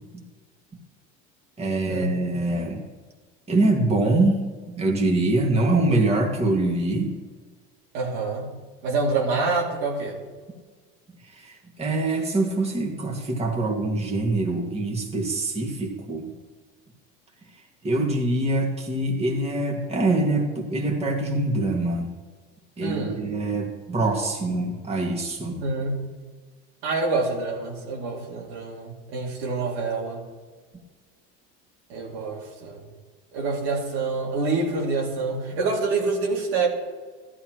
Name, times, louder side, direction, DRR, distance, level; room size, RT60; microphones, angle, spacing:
voice 1, 1.6-2.8 3.5-7.2 11.3-16.3 17.8-22.1 22.8-25.6, right 2 dB, 20° right, 0 dB, 2.1 m, -24 dB
voice 2, 7.9-8.5 8.8-10.2 22.8-23.2 25.6-26.0 26.8-30.2 31.9-32.8 33.3-36.7, right 3 dB, 85° right, -2 dB, 2.7 m, -26 dB
14.0 x 11.5 x 3.1 m, 1.5 s
supercardioid pair, 115°, 31 cm